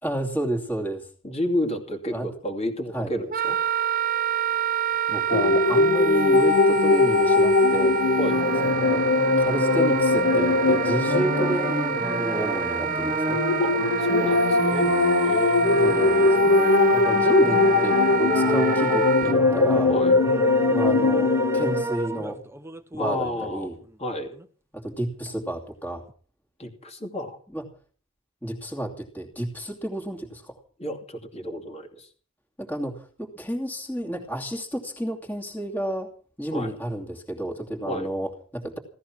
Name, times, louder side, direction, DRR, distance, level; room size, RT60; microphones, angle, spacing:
voice 1, 0.0-1.1 2.1-2.3 2.9-3.1 5.1-8.0 8.6-9.1 9.4-13.4 15.8-16.4 16.9-19.9 20.7-22.4 22.9-23.7 24.7-26.0 27.5-27.6 28.4-30.6 32.6-36.1 36.4-38.8, right 1 dB, 10° left, 1 dB, 2.7 m, -31 dB
voice 2, 1.2-3.6 8.2-8.4 13.6-13.7 14.0-16.0 19.9-20.2 23.0-23.7 24.0-24.3 26.6-27.4 30.8-32.1 36.5-36.7 37.8-38.1, equal, 30° left, 2 dB, 2.6 m, -31 dB
Wind instrument woodwind instrument, 3.3-19.4, right 8 dB, 45° right, 0.9 m, -28 dB
sound 1, 5.3-12.4 13.3-21.8, left 3 dB, 75° left, 0.8 m, -21 dB
sound 2, 8.3-23.5 23.8-23.9 24.3-24.4 26.1-26.2, right 1 dB, 15° right, 1.0 m, -30 dB
16.5 x 14.0 x 6.1 m, 0.42 s
head